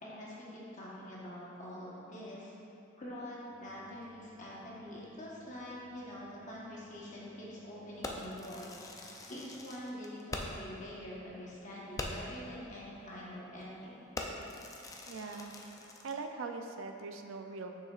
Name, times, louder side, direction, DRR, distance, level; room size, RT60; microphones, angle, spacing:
voice 1, 0.0-2.5 3.0-13.9, left 1 dB, 40° left, -7 dB, 1.1 m, -45 dB
sound 1, 3.5-10.0, right 1 dB, 40° right, 0.9 m, -65 dB
Fireworks, 8.0-10.7 11.1-11.2 11.5-11.6 12.0-12.4 13.0-13.2 13.6-13.8 14.2-16.2, left 2 dB, 15° left, 0.4 m, -43 dB
voice 2, 15.1-15.5 15.8-17.7, right 4 dB, 70° right, 5 dB, 0.4 m, -42 dB
7.4 x 6.1 x 2.4 m, 2.9 s
head